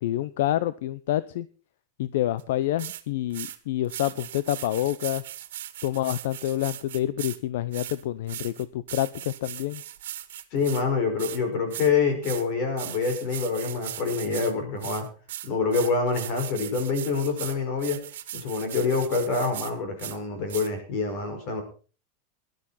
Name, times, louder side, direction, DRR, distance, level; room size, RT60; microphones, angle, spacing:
voice 1, 0.0-1.5 2.0-5.2 5.8-9.8, left 13 dB, 65° left, 17 dB, 0.6 m, -28 dB
sound 1, 2.4-2.5 2.8-3.0 3.3-3.6 3.8-7.4 7.7-10.8 11.2-11.4 11.7-11.9 12.2-12.4 12.8-14.5 14.8-19.7 20.0-20.2 20.5-20.7, right 12 dB, 85° right, 1.7 m, -38 dB
voice 2, 10.5-15.1 15.4-18.0 18.3-21.6, left 4 dB, 40° left, 5 dB, 5.3 m, -26 dB
19.0 x 12.0 x 4.2 m, 0.36 s
supercardioid pair, 170°, 0 cm